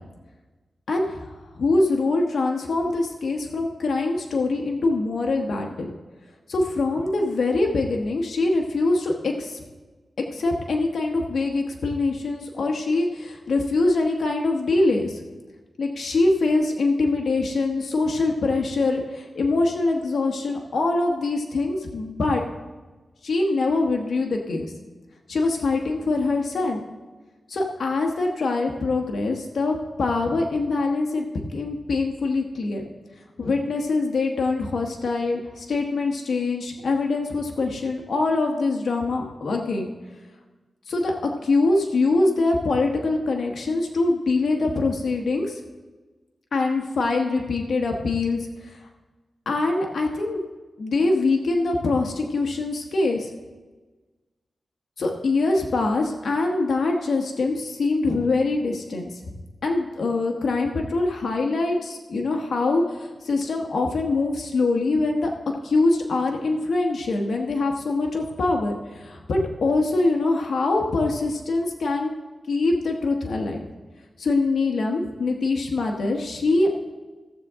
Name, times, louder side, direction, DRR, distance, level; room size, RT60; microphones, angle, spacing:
voice 1, 0.9-1.3 1.5-5.9 6.5-9.6 10.3-15.2 15.8-22.4 23.2-24.7 25.3-26.9 27.5-32.8 33.4-39.9 40.9-45.6 46.5-48.8 49.5-50.4 50.8-53.3 55.0-59.1 59.6-65.3 65.6-72.1 72.5-73.7 74.2-76.7, left 3 dB, 75° left, 2 dB, 1.1 m, -24 dB
15.5 x 7.3 x 3.6 m, 1.2 s
wide cardioid pair, 85°, 0 cm